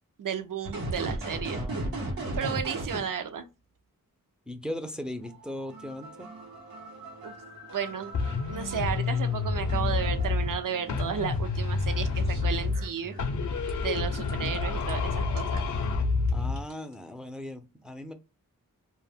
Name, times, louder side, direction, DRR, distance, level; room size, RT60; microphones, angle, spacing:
voice 1, 0.2-1.6 2.3-3.4 7.2-7.3 7.7-8.1 8.5-13.2 13.8-15.6, right 7 dB, 65° right, 0.5 m, -33 dB
sound 1, 0.6-3.0 5.1-13.3 13.7-14.9 15.4-15.6 16.3-16.4 16.5-16.9, right 2 dB, 90° right, 0.9 m, -38 dB
voice 2, 1.4-2.6 4.5-6.3 16.3-18.1, left 1 dB, 5° right, 0.4 m, -39 dB
sound 2, 8.1-10.6 10.9-12.9 13.2-16.6, left 4 dB, 55° left, 0.5 m, -28 dB
2.2 x 2.1 x 3.4 m
wide cardioid pair, 80°, 34 cm